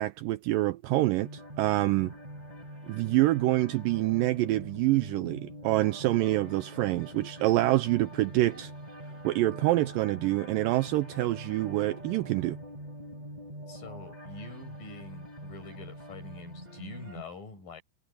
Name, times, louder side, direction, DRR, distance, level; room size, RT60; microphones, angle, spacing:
voice 1, 0.0-2.1 2.9-8.7 9.2-12.6, right 17 dB, 80° right, 2.0 m, -26 dB
sound 1, 1.2-17.2, equal, 10° right, 5.2 m, -44 dB
voice 2, 13.7-17.8, left 3 dB, 65° left, 7.8 m, -45 dB
omnidirectional pair, 4.4 m